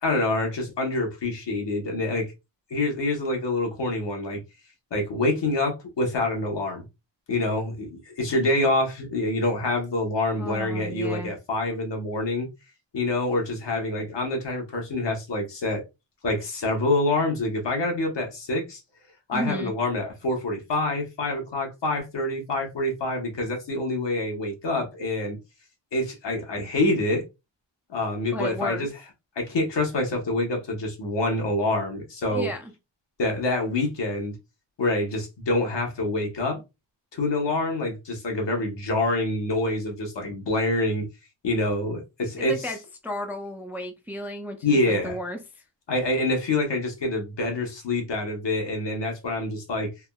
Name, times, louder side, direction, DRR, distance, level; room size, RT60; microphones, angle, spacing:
voice 1, 0.0-2.3 2.7-4.4 4.9-6.8 7.3-12.5 12.9-15.8 16.2-18.8 19.3-25.4 25.9-27.2 27.9-28.9 29.4-32.5 33.2-34.3 34.8-36.6 37.1-41.0 41.4-42.5 44.6-45.2 45.9-49.9, left 2 dB, 65° left, 1.0 m, -26 dB
voice 2, 10.4-11.3 19.3-19.7 28.3-28.9 32.3-32.7 42.4-45.6, left 1 dB, 5° right, 0.4 m, -33 dB
3.4 x 2.1 x 2.2 m
wide cardioid pair, 145°, 46 cm